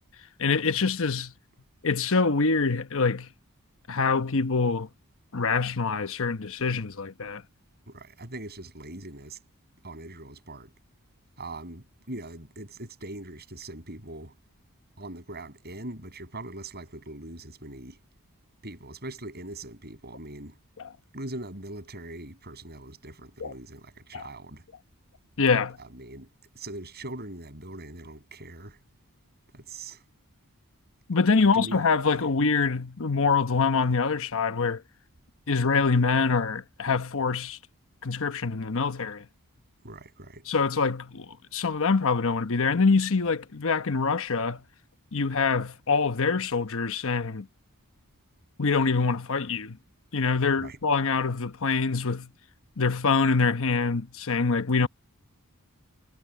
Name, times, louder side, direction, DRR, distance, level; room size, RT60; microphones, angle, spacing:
voice 1, 0.4-1.3 1.8-3.3 3.9-4.9 5.3-7.4 23.4-23.5 24.1-24.3 25.4-25.8 31.1-34.8 35.5-37.6 38.0-39.2 40.5-44.6 45.1-47.5 48.6-49.8 50.1-52.3 52.8-54.9, left 4 dB, 65° left, 1.0 m, -25 dB
voice 2, 7.9-9.4 9.8-10.7 11.4-14.4 15.0-18.0 18.6-20.6 21.1-24.7 25.8-26.3 26.5-28.8 29.5-30.0 31.4-31.9 39.8-40.5 50.5-50.8, right 2 dB, 45° right, 7.9 m, -41 dB
head